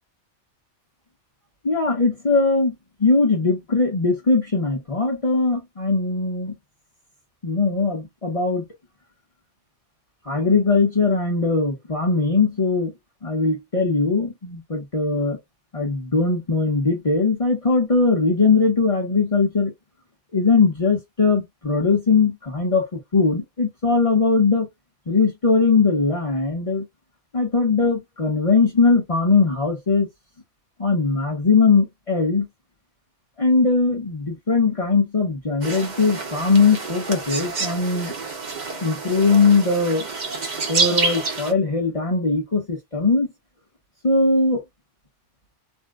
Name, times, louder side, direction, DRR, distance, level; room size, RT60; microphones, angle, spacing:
voice 1, 1.6-2.7 3.0-6.5 7.4-8.6 10.3-12.9 13.2-15.4 15.7-19.7 20.3-24.7 25.1-26.8 27.3-30.1 30.8-32.5 33.4-38.1 38.8-40.1 40.7-43.3 44.0-44.6, left 4 dB, 35° left, 0.8 m, -20 dB
sound 1, 35.6-41.5, right 4 dB, 45° right, 0.8 m, -28 dB
2.6 x 2.0 x 3.5 m
omnidirectional pair, 1.3 m